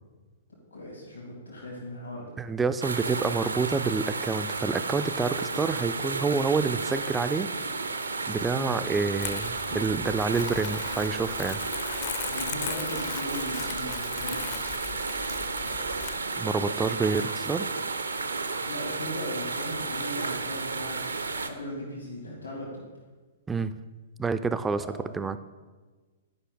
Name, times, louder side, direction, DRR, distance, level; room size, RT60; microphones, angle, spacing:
voice 1, 0.7-2.4 8.5-8.7 12.3-14.7 15.5-15.9 18.6-22.8 24.7-25.4, left 1 dB, 80° left, -4 dB, 2.5 m, -38 dB
voice 2, 2.4-7.5 8.3-11.6 11.9-12.1 16.4-17.7 23.5-23.7 24.2-25.4, right 4 dB, 10° right, 12 dB, 0.3 m, -28 dB
sound 1, 2.8-21.5, right 4 dB, 75° right, 0.6 m, -32 dB
Crumpling crinkling, 9.2-16.2, left 11 dB, 40° left, 0.5 m, -39 dB
11.5 x 5.5 x 3.9 m, 1.3 s
figure-of-eight pair, 110°, 0 cm